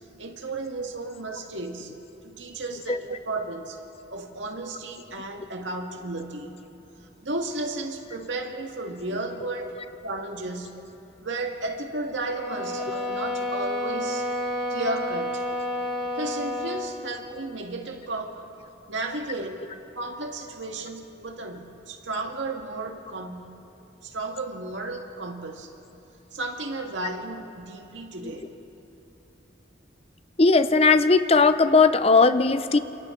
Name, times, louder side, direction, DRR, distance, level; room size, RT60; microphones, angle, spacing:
voice 1, 0.2-1.9 2.2-3.8 4.1-6.7 7.2-9.7 10.0-10.7 11.2-14.3 14.7-15.4 16.2-18.5 18.9-19.7 20.0-23.5 24.0-25.7 26.3-28.5, right 2 dB, 85° right, 3 dB, 1.9 m, -33 dB
sound 1, 12.2-16.9, left 1 dB, 65° left, 5.6 m, -30 dB
voice 2, 30.4-32.8, left 4 dB, 35° left, 11 dB, 0.6 m, -18 dB
29.5 x 27.5 x 3.8 m, 3.0 s
head